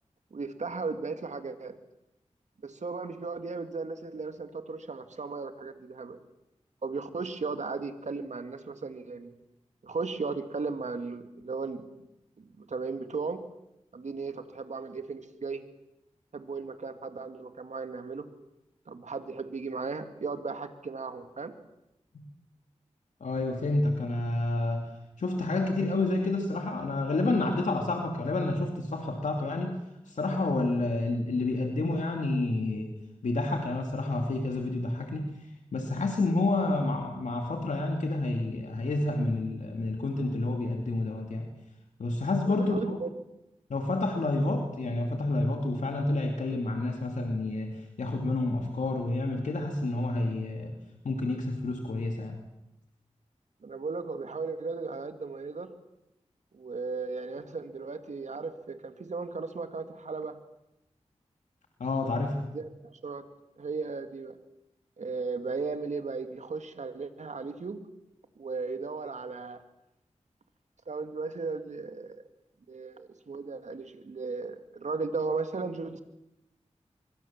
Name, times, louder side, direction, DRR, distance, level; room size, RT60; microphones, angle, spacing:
voice 1, 0.3-1.7 2.6-6.2 6.8-9.3 9.8-11.9 12.4-13.4 13.9-15.6 16.3-18.3 18.9-21.5 42.5-43.1 53.6-55.7 56.5-60.4 62.5-63.2 63.6-64.4 65.0-67.8 68.4-69.6 70.9-72.2 72.7-76.0, right 4 dB, 75° right, 8 dB, 2.3 m, -36 dB
voice 2, 23.2-24.9 25.2-29.8 30.1-32.9 33.2-41.5 42.0-43.0 43.7-50.7 51.0-52.4 61.8-62.5, left 2 dB, 90° left, 3 dB, 2.6 m, -29 dB
25.0 x 23.5 x 7.4 m, 0.90 s
wide cardioid pair, 55°, 12 cm